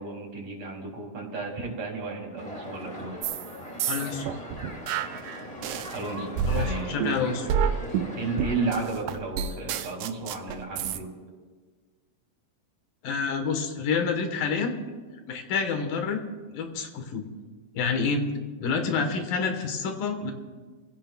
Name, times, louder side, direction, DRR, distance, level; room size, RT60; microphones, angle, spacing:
voice 1, 0.0-3.1 5.9-6.9 8.2-11.1, right 3 dB, 50° right, -1 dB, 4.2 m, -33 dB
sound 1, 2.4-8.7, left 1 dB, 15° left, 1.3 m, -40 dB
sound 2, 3.2-3.5 3.8-6.0 6.4-11.0, right 7 dB, 85° right, 2.3 m, -29 dB
voice 2, 3.9-4.4 6.5-7.5 13.0-14.7 15.3-16.2 16.5-17.3 17.7-18.2 18.6-20.3, left 5 dB, 85° left, 5 dB, 3.1 m, -28 dB
29.0 x 16.0 x 2.4 m, 1.4 s
omnidirectional pair, 3.8 m